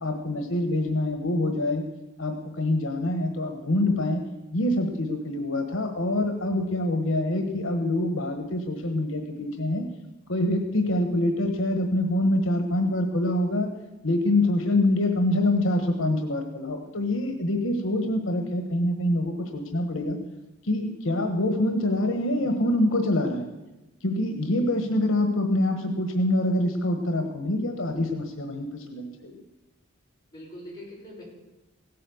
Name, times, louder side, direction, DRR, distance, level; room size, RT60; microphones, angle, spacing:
voice 1, 0.0-1.8 2.2-4.2 4.5-9.8 10.3-13.7 14.0-20.2 20.6-23.5 24.0-29.3, left 1 dB, 75° left, 5 dB, 1.3 m, -25 dB
voice 2, 30.3-31.2, equal, 20° left, -5 dB, 6.0 m, -43 dB
16.5 x 8.5 x 7.1 m, 1.0 s
head